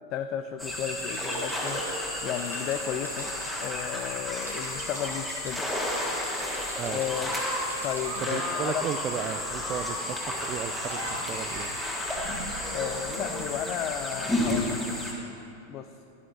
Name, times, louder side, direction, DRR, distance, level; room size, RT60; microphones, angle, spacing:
voice 1, 0.1-1.8 2.2-3.3 3.6-5.7 6.9-7.3 7.8-8.9 12.7-14.8 15.7-15.9, left 10 dB, 40° left, 8 dB, 0.3 m, -33 dB
sound 1, 0.6-15.1, left 1 dB, 5° left, 1.7 m, -32 dB
sound 2, 1.0-3.5 4.3-5.5 6.1-8.5 9.1-9.3 10.7-11.9, right 1 dB, 90° right, 1.9 m, -46 dB
sound 3, 7.5-12.2 13.3-13.5, right 2 dB, 50° right, 2.3 m, -42 dB
voice 2, 8.2-11.7, right 8 dB, 30° right, 12 dB, 0.4 m, -35 dB
12.0 x 11.5 x 2.5 m, 2.8 s
figure-of-eight pair, 90°, 0 cm